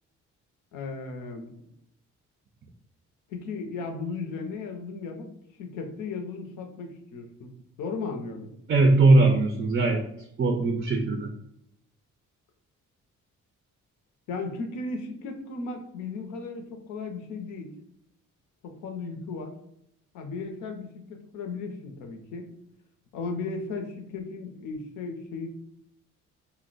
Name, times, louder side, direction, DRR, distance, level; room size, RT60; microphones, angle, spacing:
voice 1, 0.7-1.5 3.3-5.3 5.6-7.5 7.8-8.5 14.3-17.7 18.6-19.6 20.1-22.5 23.1-25.5, left 4 dB, 85° left, 4 dB, 0.6 m, -36 dB
voice 2, 8.7-10.0 10.4-11.3, right 2 dB, 35° right, 3 dB, 0.4 m, -20 dB
2.6 x 2.1 x 3.9 m, 0.76 s
cardioid pair, 90°, 30 cm